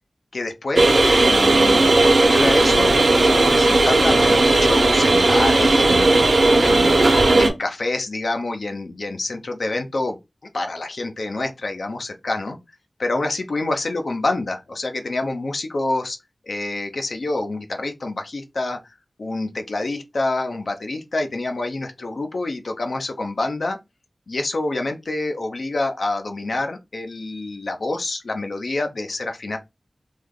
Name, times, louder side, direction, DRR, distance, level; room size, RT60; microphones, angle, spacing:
voice 1, 0.3-6.1 6.5-10.2 10.5-12.6 13.0-16.2 16.5-18.9 19.2-23.8 24.3-29.6, left 2 dB, 75° left, 0.6 m, -27 dB
sound 1, 0.8-7.5, right 2 dB, 70° right, 0.9 m, -16 dB
3.2 x 2.2 x 3.7 m
wide cardioid pair, 85°, 0 cm